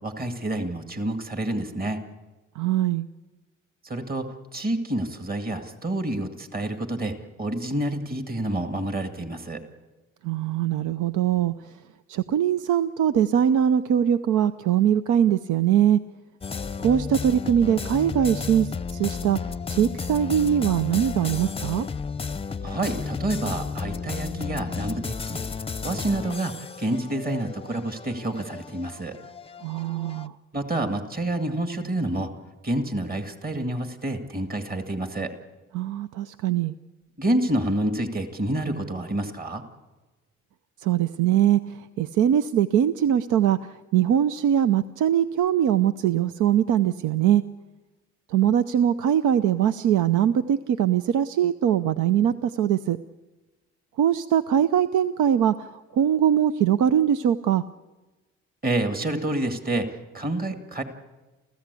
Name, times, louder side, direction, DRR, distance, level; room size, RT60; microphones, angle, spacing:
voice 1, 0.0-2.0 3.8-9.6 22.6-25.4 25.8-29.1 30.5-32.3 32.6-35.3 37.2-39.6 58.6-59.9 60.1-60.8, right 1 dB, 30° right, 6 dB, 2.2 m, -28 dB
voice 2, 2.6-3.1 10.2-11.7 12.1-16.0 16.8-19.4 19.7-21.9 29.6-30.3 35.7-36.7 40.8-47.4 48.3-53.0 54.0-57.6, right 10 dB, 85° right, 12 dB, 0.7 m, -22 dB
sound 1, 16.4-30.3, left 5 dB, 20° left, 0.6 m, -33 dB
29.0 x 15.0 x 8.3 m, 1.2 s
cardioid pair, 90°, 30 cm